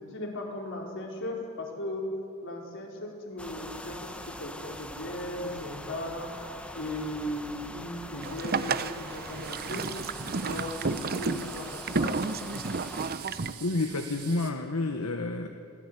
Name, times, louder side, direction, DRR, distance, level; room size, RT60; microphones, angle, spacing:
voice 1, 0.0-2.1 2.4-6.3 6.7-9.9 10.4-12.3, left 1 dB, 60° left, 0 dB, 4.8 m, -37 dB
sound 1, 3.4-13.1, left 1 dB, 5° left, 1.2 m, -43 dB
Boat Water vehicle, 8.2-13.5, right 4 dB, 45° right, 0.8 m, -32 dB
sound 2, 9.4-14.5, right 10 dB, 90° right, 2.9 m, -45 dB
voice 2, 13.6-15.5, left 2 dB, 75° left, 5 dB, 1.3 m, -29 dB
25.0 x 18.0 x 9.7 m, 2.4 s
head